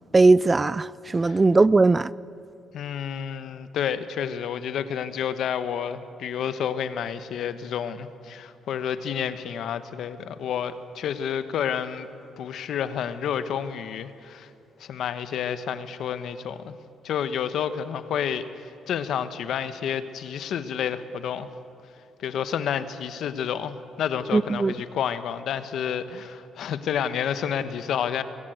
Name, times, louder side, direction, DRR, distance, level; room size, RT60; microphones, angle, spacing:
voice 1, 0.1-2.1 24.3-24.7, right 3 dB, 25° right, 0.4 m, -19 dB
voice 2, 2.7-12.1 12.4-14.5 14.8-16.7 17.0-21.5 22.2-28.2, left 8 dB, 75° left, 1.1 m, -30 dB
22.0 x 17.0 x 7.7 m
cardioid pair, 90°, 0 cm